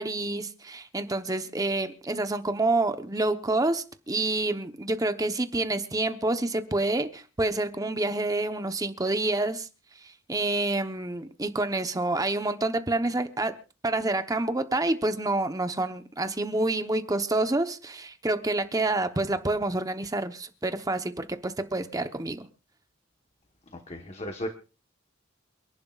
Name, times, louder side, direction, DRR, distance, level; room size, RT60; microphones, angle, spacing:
voice 1, 0.0-9.7 10.0-13.5 13.8-22.5, right 2 dB, 20° right, 8 dB, 0.9 m, -28 dB
voice 2, 23.7-24.5, equal, 35° left, 5 dB, 1.2 m, -35 dB
28.5 x 11.0 x 2.4 m, 0.34 s
head